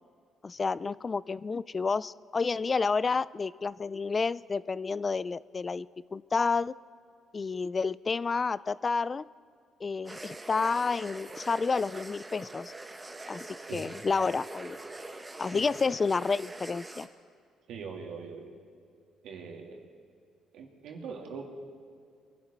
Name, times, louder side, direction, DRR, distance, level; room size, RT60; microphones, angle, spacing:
voice 1, 0.4-6.7 7.3-9.2 9.8-12.7 13.3-14.8 15.4-17.1, left 4 dB, 30° left, 19 dB, 0.3 m, -30 dB
sound 1, 10.0-17.1, right 2 dB, 15° right, 1.3 m, -44 dB
voice 2, 17.7-18.5 19.2-19.8 20.5-21.4, right 5 dB, 75° right, 1 dB, 2.6 m, -41 dB
24.0 x 11.5 x 4.5 m, 2.4 s
cardioid pair, 100°, 0 cm